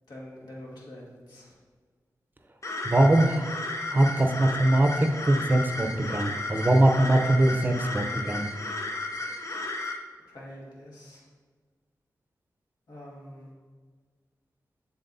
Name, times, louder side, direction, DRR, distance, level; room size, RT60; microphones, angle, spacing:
voice 1, 0.1-1.6 10.3-11.2 12.9-13.5, left 1 dB, 80° left, -5 dB, 2.0 m, -45 dB
sound 1, 2.6-10.0, left 2 dB, 45° left, 0.7 m, -34 dB
voice 2, 2.8-3.5 3.9-8.5, right 1 dB, 30° right, 4 dB, 0.6 m, -22 dB
7.7 x 7.3 x 2.7 m, 1.5 s
wide cardioid pair, 85°, 7 cm